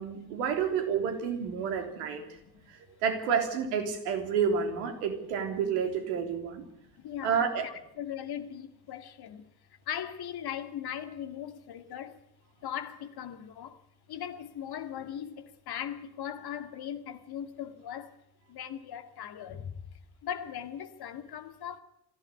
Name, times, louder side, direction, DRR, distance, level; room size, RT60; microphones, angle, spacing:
voice 1, 0.0-2.2 2.7-6.7 7.2-7.7, right 7 dB, 70° right, 3.5 m, -30 dB
voice 2, 6.9-9.5 9.9-12.2 12.6-13.8 14.1-18.1 18.5-19.7 20.2-21.8, left 9 dB, 50° left, 2.2 m, -39 dB
23.5 x 16.0 x 8.1 m
figure-of-eight pair, 50°, 48 cm